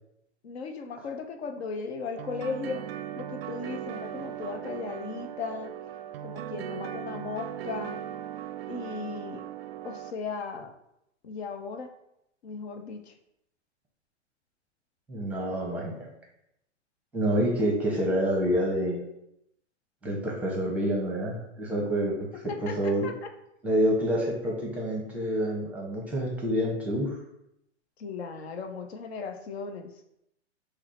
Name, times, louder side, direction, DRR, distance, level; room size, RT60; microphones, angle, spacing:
voice 1, 0.4-2.9 3.2-5.7 6.2-8.0 8.7-9.4 9.8-10.7 11.2-11.9 12.4-13.1 22.5-23.3 28.0-29.9, left 4 dB, 60° left, 6 dB, 0.8 m, -36 dB
sound 1, 2.2-10.1, right 10 dB, 55° right, 0.5 m, -38 dB
voice 2, 15.1-16.1 17.1-19.0 20.0-22.3 22.6-23.1 23.6-27.2, equal, 5° right, -1 dB, 0.8 m, -27 dB
5.9 x 2.1 x 4.2 m, 0.80 s
hypercardioid pair, 135°, 35 cm